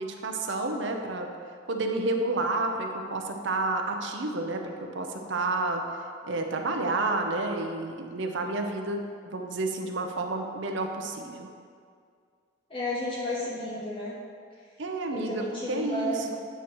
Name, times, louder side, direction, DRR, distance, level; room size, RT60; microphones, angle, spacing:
voice 1, 0.0-1.3 1.7-5.8 6.2-11.5 14.8-16.3, right 2 dB, 65° right, 3 dB, 0.7 m, -30 dB
voice 2, 12.7-14.1 15.1-16.4, equal, 25° left, -7 dB, 0.9 m, -32 dB
9.1 x 3.1 x 6.1 m, 2.2 s
head